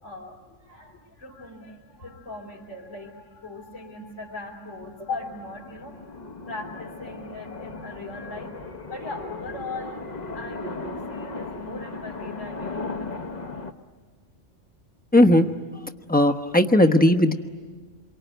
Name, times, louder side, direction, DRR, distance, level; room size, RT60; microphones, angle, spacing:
voice 1, 0.0-8.6 8.9-13.2, left 3 dB, 75° left, -4 dB, 3.6 m, -39 dB
sound 1, 4.8-13.7, left 3 dB, 35° left, 1.1 m, -37 dB
voice 2, 15.1-15.5 16.1-17.3, left 1 dB, 10° left, 5 dB, 1.0 m, -17 dB
27.5 x 23.5 x 9.1 m, 1.5 s
omnidirectional pair, 1.3 m